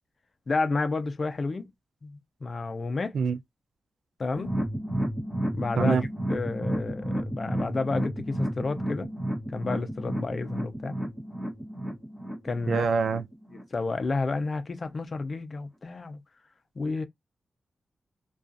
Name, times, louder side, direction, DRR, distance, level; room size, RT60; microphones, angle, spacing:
voice 1, 0.5-1.7 2.0-3.2 4.2-4.5 5.5-6.0 6.3-9.1 9.5-11.0 12.4-12.8 13.7-16.2 16.8-17.0, left 3 dB, 45° left, 0.4 m, -30 dB
sound 1, 4.4-13.6 14.0-14.1 14.5-14.6, right 1 dB, 5° right, 1.0 m, -32 dB
voice 2, 12.7-13.3, right 5 dB, 90° right, 0.3 m, -25 dB
2.3 x 2.3 x 2.4 m
wide cardioid pair, 105°, 0 cm